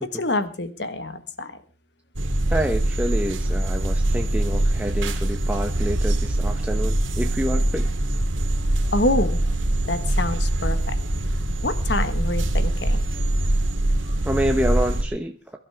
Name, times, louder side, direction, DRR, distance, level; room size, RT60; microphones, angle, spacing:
voice 1, 0.0-1.6 8.9-9.4 9.9-11.0 11.6-13.0 14.0-14.2, left 2 dB, 60° left, 11 dB, 1.4 m, -26 dB
sound 1, 2.2-15.0, right 1 dB, 80° right, 2.2 m, -23 dB
voice 2, 2.5-7.9 14.2-15.6, equal, 5° right, 3 dB, 1.0 m, -27 dB
23.0 x 12.0 x 3.5 m, 0.33 s
head